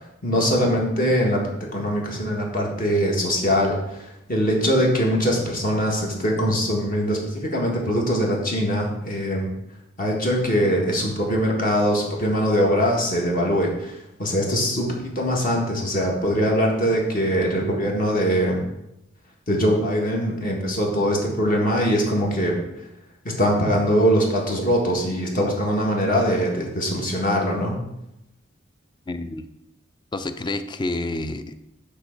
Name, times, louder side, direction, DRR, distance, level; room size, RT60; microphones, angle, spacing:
voice 1, 0.2-1.4 1.7-9.5 10.0-18.6 19.5-22.6 23.2-27.8, equal, 45° left, -1 dB, 1.6 m, -22 dB
voice 2, 29.1-29.5 30.1-31.7, left 2 dB, 25° left, 11 dB, 0.4 m, -29 dB
8.0 x 3.5 x 6.5 m, 0.86 s
head